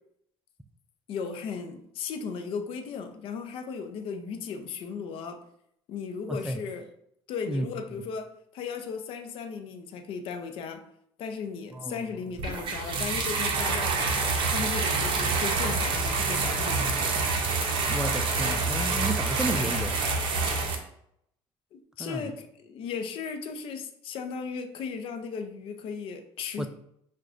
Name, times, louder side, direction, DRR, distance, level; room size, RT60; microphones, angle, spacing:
voice 1, 1.1-5.4 5.9-6.8 7.3-10.8 11.2-14.1 14.5-17.2 21.7-26.7, left 5 dB, 60° left, 7 dB, 0.5 m, -36 dB
voice 2, 6.3-6.6 7.5-8.0 11.7-12.3 17.9-20.1 22.0-22.3 26.6-26.7, right 1 dB, 5° right, 8 dB, 0.3 m, -32 dB
sound 1, 12.4-20.8, right 4 dB, 55° right, 0.7 m, -27 dB
6.0 x 2.2 x 2.5 m, 0.74 s
cardioid pair, 120°, 11 cm